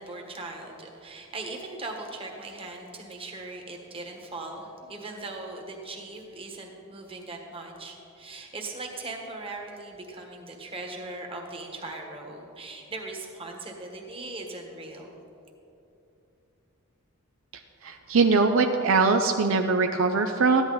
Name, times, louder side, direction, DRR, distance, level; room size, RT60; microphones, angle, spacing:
voice 1, 0.0-15.1, right 2 dB, 25° right, 1 dB, 1.4 m, -39 dB
voice 2, 17.8-20.6, right 4 dB, 65° right, 5 dB, 0.5 m, -22 dB
14.5 x 11.0 x 4.0 m, 2.8 s
head